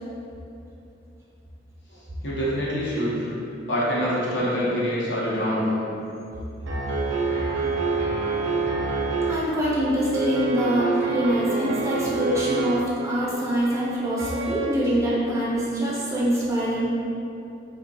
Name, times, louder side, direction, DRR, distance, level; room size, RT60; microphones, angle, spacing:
voice 1, 1.9-3.3 3.7-5.8, equal, 75° left, -8 dB, 0.8 m, -25 dB
sound 1, 6.7-9.3 10.1-12.8 14.2-14.7, right 4 dB, 80° right, 0.5 m, -26 dB
voice 2, 9.3-16.9, equal, 15° right, -7 dB, 0.5 m, -24 dB
2.4 x 2.2 x 3.8 m, 2.8 s
head